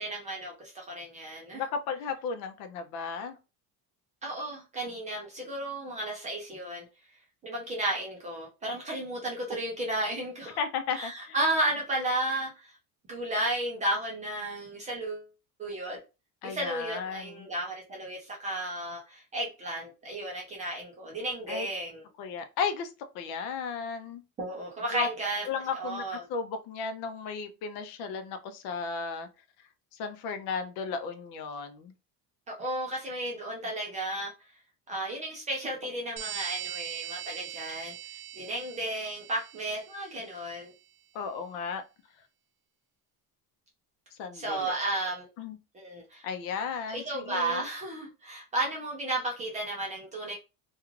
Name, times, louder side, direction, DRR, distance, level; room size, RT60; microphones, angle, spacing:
voice 1, 0.0-1.6 4.2-6.8 7.4-10.6 10.9-12.7 13.1-15.3 15.6-16.0 16.4-22.0 24.4-25.4 25.7-26.3 32.5-34.3 34.9-37.9 38.4-40.7 44.3-45.3 45.7-46.2 46.9-50.3, right 1 dB, 20° right, 0.3 m, -33 dB
voice 2, 1.5-3.4 10.6-11.4 16.4-17.5 21.5-21.7 22.2-24.2 24.9-25.1 25.5-29.3 29.9-31.9 41.1-41.8 44.2-44.8 45.4-45.6 46.2-47.6, left 5 dB, 70° left, 0.6 m, -34 dB
sound 1, 36.2-40.4, right 11 dB, 75° right, 0.6 m, -41 dB
2.4 x 2.3 x 3.0 m
cardioid pair, 180°, 42 cm